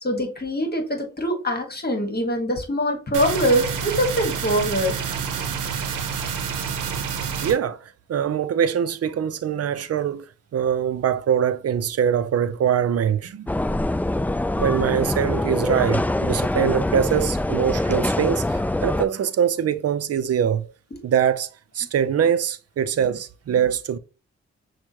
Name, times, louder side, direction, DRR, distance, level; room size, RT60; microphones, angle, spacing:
voice 1, 0.0-4.9, equal, 30° left, 1.5 m, -23 dB
sound 1, 3.1-7.5, right 7 dB, 90° right, 0.7 m, -28 dB
voice 2, 7.4-13.5 14.6-20.7 21.0-21.5 21.7-24.0, right 8 dB, 55° right, 0.5 m, -23 dB
sound 2, 13.5-19.0, left 1 dB, 5° left, 0.3 m, -24 dB
6.1 x 2.3 x 2.8 m
supercardioid pair, 40°, 30 cm